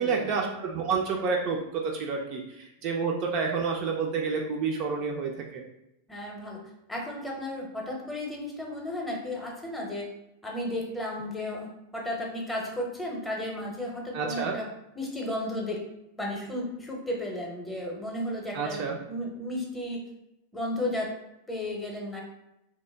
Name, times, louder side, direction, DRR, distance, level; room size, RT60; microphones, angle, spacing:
voice 1, 0.0-5.6 14.1-14.6 18.5-19.0, right 5 dB, 40° right, 0 dB, 0.4 m, -29 dB
voice 2, 6.1-6.6 6.9-10.1 10.4-14.6 15.0-15.8 16.2-18.8 19.1-20.0 20.5-21.1 21.5-22.2, left 1 dB, 10° left, -1 dB, 0.7 m, -33 dB
2.8 x 2.1 x 3.3 m, 0.85 s
figure-of-eight pair, 90°, 0 cm